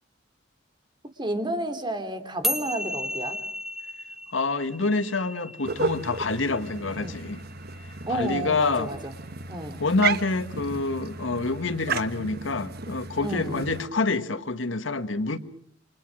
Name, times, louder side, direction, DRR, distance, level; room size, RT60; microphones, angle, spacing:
voice 1, 1.2-3.4 7.0-7.2 8.1-9.1 9.5-9.8 13.2-13.6, right 1 dB, 25° right, 8 dB, 2.7 m, -31 dB
sound 1, 2.4-9.0, left 1 dB, ahead, 2.1 m, -35 dB
voice 2, 4.3-7.4 8.1-8.9 9.8-15.4, left 3 dB, 85° left, 11 dB, 1.5 m, -27 dB
sound 2, 5.6-13.9, right 4 dB, 55° right, 1.3 m, -34 dB
29.0 x 25.5 x 6.3 m, 0.65 s
head